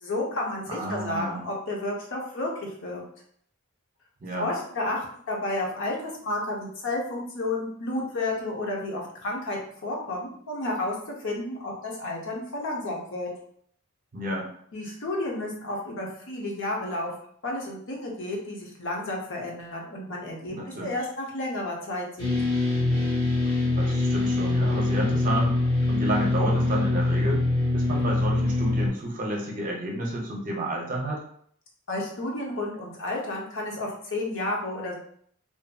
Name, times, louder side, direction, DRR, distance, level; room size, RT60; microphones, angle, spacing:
voice 1, 0.0-2.5 2.8-3.0 4.4-10.9 11.2-13.3 14.7-17.1 17.4-20.6 20.8-22.3 31.9-34.9, left 2 dB, 60° left, -2 dB, 0.7 m, -31 dB
voice 2, 0.7-1.4 4.2-4.5 14.1-14.5 20.5-21.0 23.7-25.6 25.9-27.4 27.7-31.2, right 1 dB, 40° right, -1 dB, 0.6 m, -31 dB
sound 1, 22.2-28.9, left 2 dB, 20° left, 0.9 m, -24 dB
2.6 x 2.6 x 2.2 m, 0.63 s
head